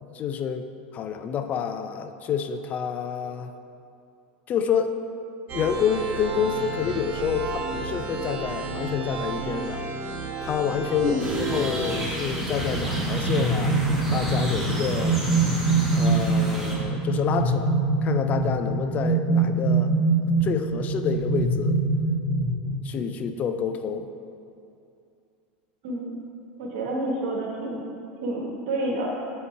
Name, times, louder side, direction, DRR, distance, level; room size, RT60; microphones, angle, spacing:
voice 1, 0.0-0.7 0.9-3.5 4.5-5.0 5.5-9.8 10.4-13.8 14.1-15.2 15.9-17.7 18.0-19.9 20.4-21.8 22.8-24.1, left 7 dB, 35° left, 8 dB, 0.4 m, -28 dB
sound 1, 5.5-12.0, right 3 dB, 35° right, 0.8 m, -32 dB
sound 2, 11.2-16.8, right 1 dB, 5° right, 1.4 m, -30 dB
sound 3, 12.7-23.1, right 3 dB, 85° left, 1.3 m, -24 dB
voice 2, 25.8-26.2 26.6-27.9 28.2-29.1, right 1 dB, 70° right, -2 dB, 1.2 m, -29 dB
8.5 x 4.2 x 4.5 m, 2.5 s
supercardioid pair, 125°, 5 cm